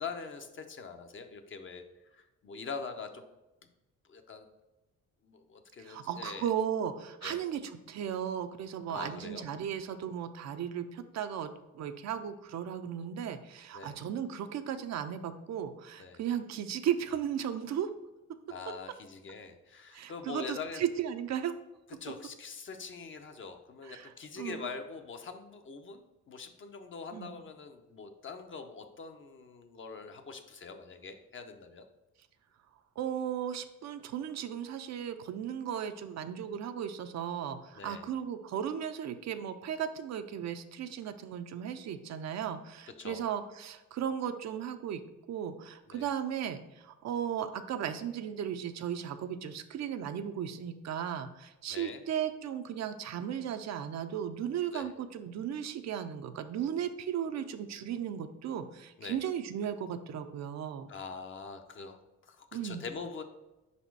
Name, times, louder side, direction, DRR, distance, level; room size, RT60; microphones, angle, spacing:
voice 1, 0.0-1.8 2.1-3.2 4.1-4.5 5.2-6.5 7.2-7.4 8.9-9.5 13.7-14.0 16.0-16.2 18.5-20.8 22.0-31.9 37.7-38.0 43.0-43.3 45.9-46.1 51.7-52.0 54.7-54.9 59.0-59.2 60.9-63.2, left 5 dB, 40° left, 6 dB, 0.7 m, -43 dB
voice 2, 5.8-11.5 11.7-17.9 19.9-21.5 23.8-24.7 27.1-27.3 33.0-45.0 45.3-60.9 62.5-62.8, right 9 dB, 60° right, 9 dB, 0.5 m, -36 dB
5.0 x 4.2 x 4.6 m, 1.0 s
cardioid pair, 90°, 30 cm